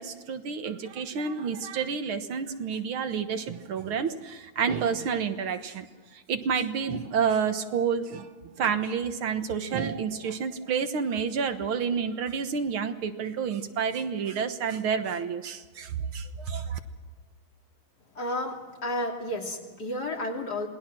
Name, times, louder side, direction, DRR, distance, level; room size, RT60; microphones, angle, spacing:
voice 1, 0.0-5.9 6.1-8.3 8.6-16.8, right 6 dB, 75° right, 8 dB, 2.1 m, -29 dB
voice 2, 18.1-20.7, left 1 dB, 45° left, 1 dB, 3.4 m, -32 dB
27.5 x 20.0 x 6.2 m, 1.4 s
omnidirectional pair, 2.4 m